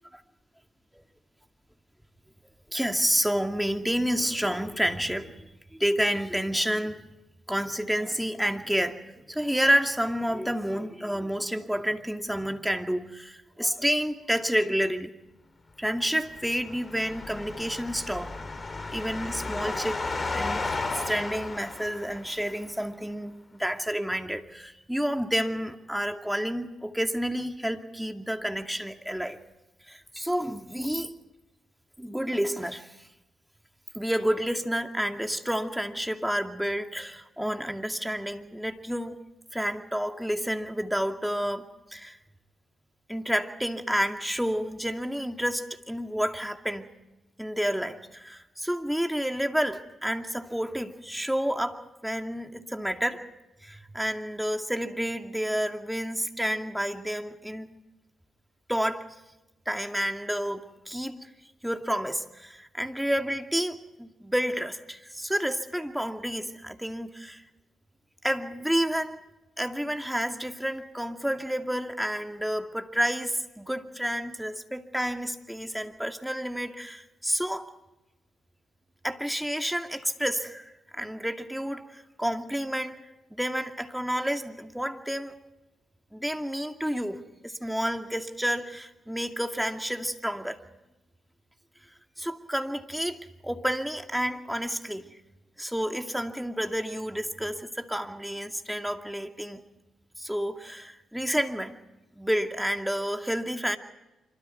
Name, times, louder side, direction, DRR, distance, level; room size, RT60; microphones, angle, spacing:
voice 1, 2.7-7.0 7.5-15.1 15.8-18.4 18.9-20.0 20.3-20.7 21.1-29.4 29.9-31.2 32.0-32.9 33.9-39.1 39.5-42.2 43.1-46.9 47.4-53.2 53.6-57.7 58.7-59.0 59.7-61.3 61.6-67.4 68.2-69.2 69.6-77.7 79.0-83.0 83.3-85.3 86.1-90.6 92.2-95.2 95.6-99.6 100.2-101.7 102.2-103.8, equal, 5° right, 5 dB, 2.5 m, -30 dB
sound 1, 16.2-22.5, left 3 dB, 35° left, 3.0 m, -34 dB
26.0 x 24.5 x 4.6 m, 0.98 s
hypercardioid pair, 45°, 0 cm